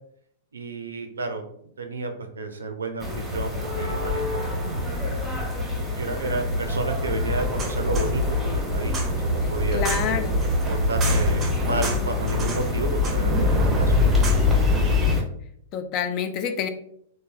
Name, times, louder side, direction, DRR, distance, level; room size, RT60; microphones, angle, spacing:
voice 1, 0.5-1.4 1.8-5.1 5.9-9.9 10.7-13.9, right 3 dB, 85° right, 5 dB, 0.4 m, -31 dB
sound 1, 3.0-15.2, left 3 dB, ahead, 0.9 m, -25 dB
sound 2, 7.4-15.1, right 1 dB, 25° right, 0.5 m, -28 dB
voice 2, 9.4-10.4 15.7-16.7, left 7 dB, 40° left, 8 dB, 0.3 m, -28 dB
3.2 x 2.1 x 2.3 m, 0.68 s
hypercardioid pair, 110°, 0 cm